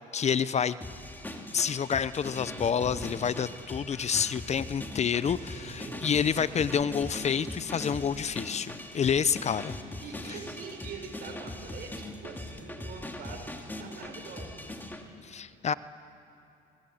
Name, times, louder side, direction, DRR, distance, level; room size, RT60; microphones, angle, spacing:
voice 1, 0.1-0.8 1.5-9.8 15.2-15.7, left 7 dB, 40° left, 16 dB, 0.6 m, -28 dB
sound 1, 0.8-15.0, left 1 dB, 10° left, 2.2 m, -40 dB
voice 2, 5.2-6.1 10.0-13.5 13.8-14.6, right 4 dB, 65° right, 2 dB, 5.1 m, -44 dB
25.0 x 19.5 x 7.7 m, 2.8 s
cardioid pair, 85°, 17 cm